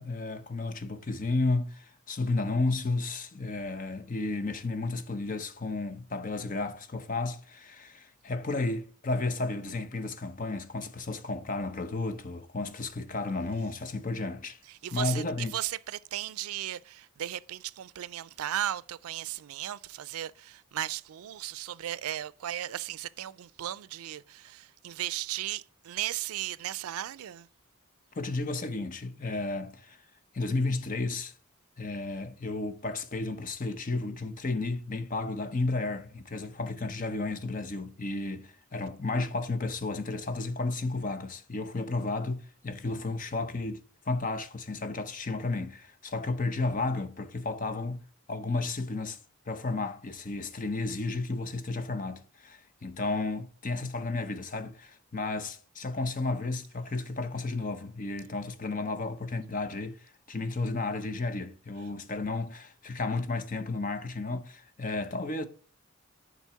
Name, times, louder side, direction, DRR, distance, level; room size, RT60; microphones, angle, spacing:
voice 1, 0.0-14.6 14.9-15.5 28.1-30.0 30.3-31.3 31.8-48.0 48.3-49.2 49.5-65.5, left 3 dB, 40° left, 0.7 m, -33 dB
voice 2, 14.7-27.5, right 12 dB, 90° right, 0.4 m, -36 dB
7.2 x 4.1 x 5.7 m
head